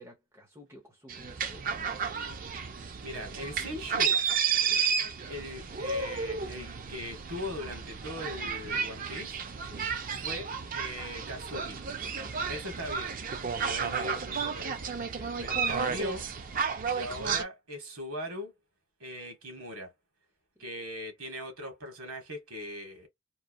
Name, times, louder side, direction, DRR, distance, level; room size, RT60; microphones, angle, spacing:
voice 1, 0.0-2.2 2.4-3.4 4.6-4.9 9.6-10.0 12.1-12.5 13.4-13.7 15.1-15.4 20.6-20.7, equal, 10° right, 0.7 m, -52 dB
sound 1, 1.1-17.4, right 6 dB, 35° right, 0.4 m, -32 dB
voice 2, 3.0-4.2 5.2-9.4 10.2-11.8 12.3-13.2 13.6-14.9 15.4-16.3 16.9-18.5 19.0-19.9 20.6-23.1, equal, 75° right, 1.2 m, -40 dB
3.0 x 2.3 x 2.2 m
head